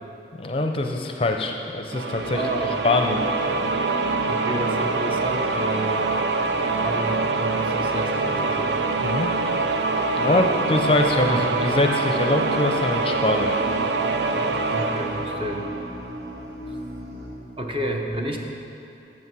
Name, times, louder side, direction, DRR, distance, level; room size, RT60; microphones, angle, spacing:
voice 1, 0.4-2.4 2.8-3.2 9.0-9.3 10.2-13.5, left 2 dB, 30° left, 4 dB, 0.5 m, -23 dB
sound 1, 1.9-16.5, right 3 dB, 70° right, 0.5 m, -25 dB
sound 2, 2.1-17.3, equal, 85° right, 2.0 m, -39 dB
voice 2, 2.3-2.8 4.3-6.2 6.7-8.8 10.3-10.5 11.3-11.5 14.3-15.7 17.6-18.4, right 1 dB, 30° right, 1 dB, 0.8 m, -30 dB
8.4 x 7.4 x 6.1 m, 2.8 s
head